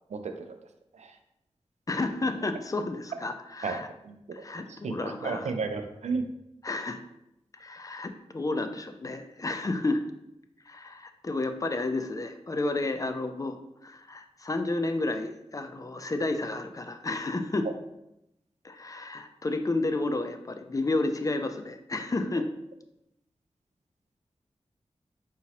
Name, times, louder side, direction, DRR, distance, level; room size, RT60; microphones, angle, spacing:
voice 1, 0.1-0.6 0.9-1.1 3.6-4.4 4.7-6.3, right 4 dB, 80° right, 6 dB, 0.4 m, -33 dB
voice 2, 1.9-3.9 4.3-5.5 6.6-7.0 7.5-10.0 10.7-13.6 13.8-17.7 18.6-22.5, left 2 dB, 30° left, 7 dB, 0.4 m, -31 dB
4.7 x 3.0 x 2.9 m, 0.83 s
wide cardioid pair, 65°, 12 cm